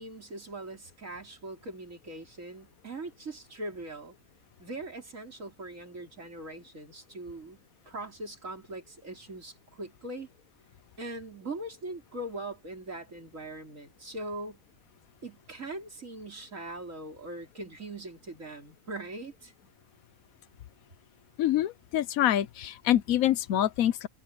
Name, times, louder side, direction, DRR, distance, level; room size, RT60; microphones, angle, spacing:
voice 1, 0.0-4.2 4.6-7.6 7.9-10.3 11.0-14.6 15.2-19.5, right 2 dB, 65° right, 4.3 m, -41 dB
voice 2, 21.4-24.1, left 12 dB, 75° left, 1.2 m, -26 dB
omnidirectional pair, 1.5 m